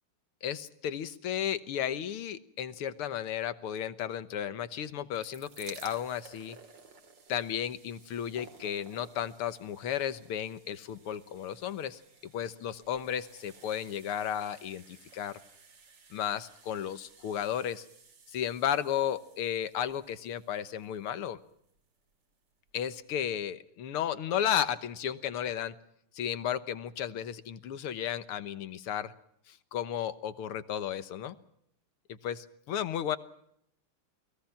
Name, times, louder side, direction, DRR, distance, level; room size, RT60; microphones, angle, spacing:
voice 1, 0.4-6.6 7.3-15.4 16.1-17.9 18.3-21.4 22.7-25.8 26.1-29.1 29.5-31.4 32.1-33.2, left 9 dB, 80° left, 13 dB, 2.0 m, -34 dB
sound 1, 4.9-21.9 22.7-22.8 23.0-23.1, right 4 dB, 55° right, 3.0 m, -56 dB
29.0 x 20.5 x 5.8 m, 0.74 s
omnidirectional pair, 2.4 m